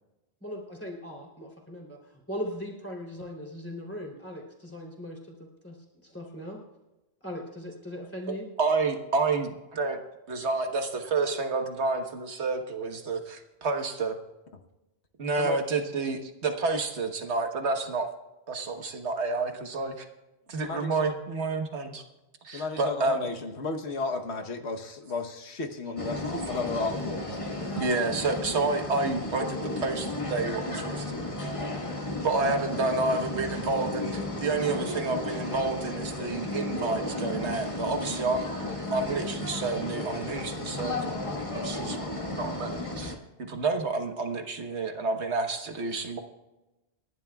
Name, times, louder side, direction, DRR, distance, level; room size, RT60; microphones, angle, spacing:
voice 1, 0.4-5.8 6.0-6.6 7.2-8.5, equal, 10° left, -1 dB, 3.3 m, -39 dB
voice 2, 8.6-10.0 10.3-14.2 15.2-18.1 18.5-20.0 20.5-22.0 22.4-23.3 27.7-31.1 32.2-38.5 38.9-41.2 41.6-42.0 42.3-43.1 43.4-46.2, right 3 dB, 80° right, 5 dB, 1.5 m, -29 dB
voice 3, 20.6-21.1 22.5-27.8, left 3 dB, 75° left, 5 dB, 1.4 m, -34 dB
sound 1, 26.0-43.2, left 2 dB, 30° left, 1.6 m, -33 dB
28.5 x 11.5 x 2.4 m, 1.0 s
omnidirectional pair, 1.1 m